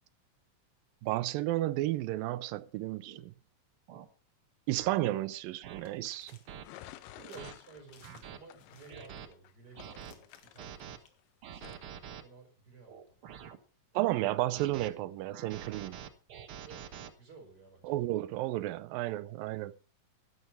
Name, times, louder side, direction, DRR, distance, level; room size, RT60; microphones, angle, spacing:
voice 1, 1.0-3.3 4.7-6.3 13.9-16.0 17.8-19.7, right 16 dB, 85° right, 2.5 m, -32 dB
sound 1, 3.1-3.2 3.9-4.1 4.8-4.9 5.6-5.8 6.5-6.6 7.2-7.5 8.0-8.4 8.9-9.3 9.8-10.1 10.6-11.0 11.4-12.2 12.9-13.6 14.2-14.9 15.3-17.1, right 8 dB, 70° right, 1.3 m, -46 dB
sound 2, 5.8-6.7 7.2-7.4 7.9-8.3 8.6-9.1 9.8-11.1, left 6 dB, 50° left, 2.2 m, -59 dB
sound 3, 6.6-11.2 11.6-11.9, left 13 dB, 85° left, 2.4 m, -53 dB
voice 2, 7.2-11.0 11.5-13.0 16.6-16.9 17.2-18.0, right 4 dB, 25° right, 5.4 m, -54 dB
11.0 x 11.0 x 4.5 m
omnidirectional pair, 4.0 m